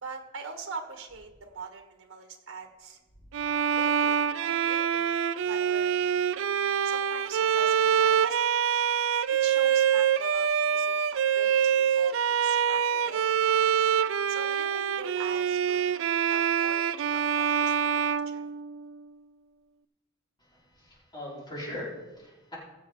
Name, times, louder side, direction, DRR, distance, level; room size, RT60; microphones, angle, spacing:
voice 1, 0.0-3.0 3.4-6.2 6.8-8.4 9.3-11.0 11.3-13.2 14.3-16.0 16.3-18.4, right 4 dB, 85° right, 4 dB, 1.5 m, -43 dB
Bowed string instrument, 3.3-19.1, right 8 dB, 65° right, 0.3 m, -25 dB
voice 2, 20.5-22.5, left 1 dB, 20° left, -7 dB, 4.9 m, -40 dB
21.5 x 7.4 x 3.9 m, 1.1 s
head